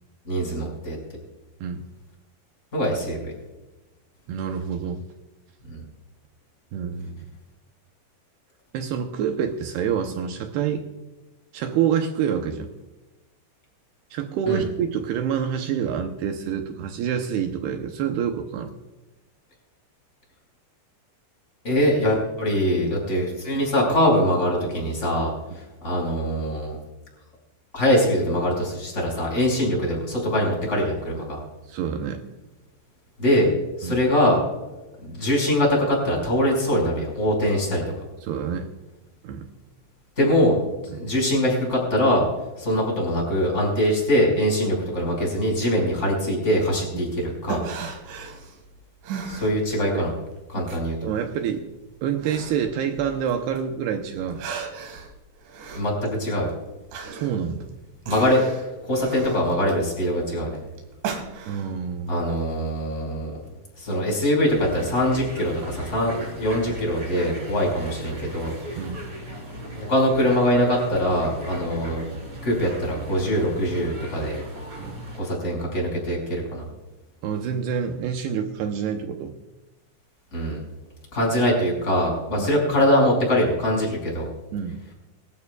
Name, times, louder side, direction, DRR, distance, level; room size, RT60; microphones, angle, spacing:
voice 1, 0.3-1.0 2.7-3.3 5.7-5.8 14.5-14.6 21.6-25.3 25.8-26.8 27.7-31.4 33.2-33.5 33.8-34.4 35.0-37.8 40.2-40.6 40.9-42.2 42.6-47.7 49.3-50.1 50.5-51.1 55.7-56.5 58.1-58.4 58.9-60.6 62.1-63.3 63.8-68.9 69.8-72.1 72.4-74.4 75.1-76.7 80.3-80.6 81.1-84.3, equal, 15° left, -2 dB, 5.6 m, -23 dB
voice 2, 4.3-5.0 6.7-7.3 8.7-10.9 11.5-12.7 14.1-18.7 31.7-32.2 33.8-34.0 38.2-38.7 39.2-39.5 40.9-41.0 46.9-47.0 49.1-49.3 49.9-50.0 51.0-51.6 52.0-54.4 57.1-57.7 61.5-62.2 68.8-69.0 74.8-75.0 77.2-79.4 82.4-82.5 84.5-84.8, right 8 dB, 75° right, 4 dB, 2.6 m, -27 dB
sound 1, 46.8-50.1 50.4-53.6 54.0-61.8, right 5 dB, 90° right, 4.6 m, -37 dB
sound 2, 64.4-75.2, equal, 20° right, 4.3 m, -37 dB
24.0 x 13.0 x 2.4 m, 1.1 s
omnidirectional pair, 5.3 m